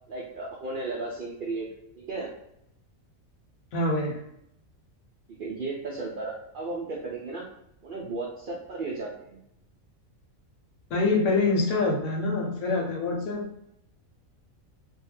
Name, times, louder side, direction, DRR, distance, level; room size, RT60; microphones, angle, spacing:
voice 1, 0.1-1.7 1.9-2.3 5.3-7.4 7.8-9.4 11.0-11.1, right 3 dB, 85° right, -5 dB, 0.4 m, -34 dB
voice 2, 3.7-4.2 10.9-13.5, left 3 dB, 80° left, 1 dB, 1.0 m, -25 dB
2.3 x 2.2 x 3.0 m, 0.78 s
omnidirectional pair, 1.4 m